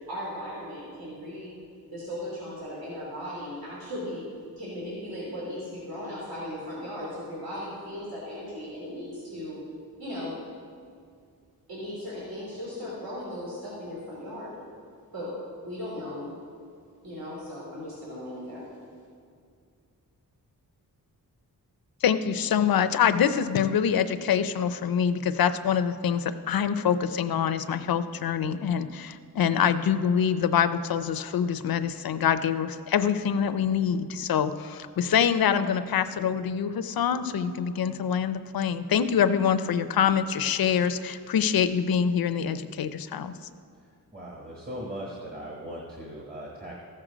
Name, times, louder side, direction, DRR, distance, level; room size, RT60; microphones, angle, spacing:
voice 1, 0.1-1.5 1.9-4.2 4.6-9.6 10.0-10.3 11.7-14.5 15.1-15.3 15.6-16.3 17.0-18.7, left 1 dB, 70° right, -7 dB, 3.2 m, -37 dB
voice 2, 22.0-43.3, left 8 dB, 70° left, 12 dB, 0.6 m, -25 dB
voice 3, 44.1-46.8, equal, 25° right, -3 dB, 1.3 m, -39 dB
14.5 x 7.7 x 5.0 m, 2.3 s
wide cardioid pair, 170°, 37 cm